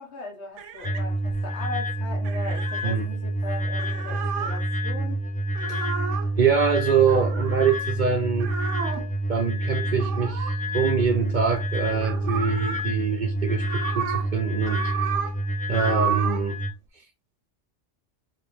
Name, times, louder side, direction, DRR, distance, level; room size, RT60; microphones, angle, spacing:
voice 1, 0.0-5.2, left 3 dB, 65° left, 1.6 m, -38 dB
sound 1, 0.6-1.6 2.2-3.0 3.6-4.6 5.5-6.3 7.1-7.9 8.4-9.1 10.0-11.5 11.8-12.8 13.4-14.3 14.6-15.4 15.7-16.5, right 7 dB, 80° right, 1.1 m, -32 dB
sound 2, 0.8-16.7, right 1 dB, 15° left, 0.3 m, -28 dB
voice 2, 6.4-8.5 9.3-14.9 15.7-16.6, right 6 dB, 50° right, 0.6 m, -24 dB
4.4 x 3.4 x 3.4 m
omnidirectional pair, 1.2 m